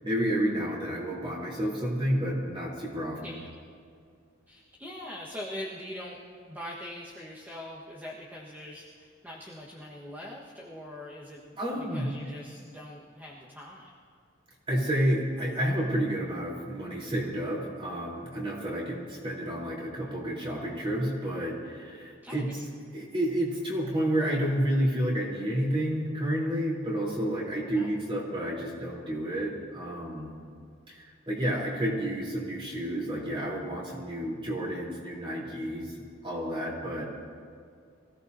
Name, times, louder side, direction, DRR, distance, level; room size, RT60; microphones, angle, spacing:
voice 1, 0.0-3.4 11.6-12.1 14.7-22.5 22.9-30.3 30.9-31.0 31.3-36.0 36.2-37.0, equal, 25° right, -4 dB, 3.7 m, -30 dB
voice 2, 4.5-6.2 6.5-13.9 22.2-22.4 27.7-27.9, left 1 dB, 10° right, -5 dB, 1.4 m, -42 dB
25.0 x 16.5 x 2.8 m, 2.2 s
head